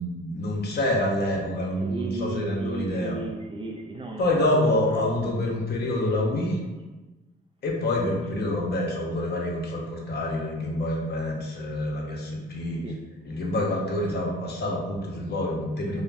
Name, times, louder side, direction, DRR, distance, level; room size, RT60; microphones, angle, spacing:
voice 1, 0.0-3.2 4.2-6.6 7.6-12.8 13.2-16.0, left 1 dB, 55° left, -1 dB, 0.6 m, -27 dB
voice 2, 1.8-5.0 12.8-13.0, right 2 dB, 25° right, 2 dB, 0.3 m, -35 dB
2.4 x 2.0 x 3.2 m, 1.2 s
cardioid pair, 90°, 20 cm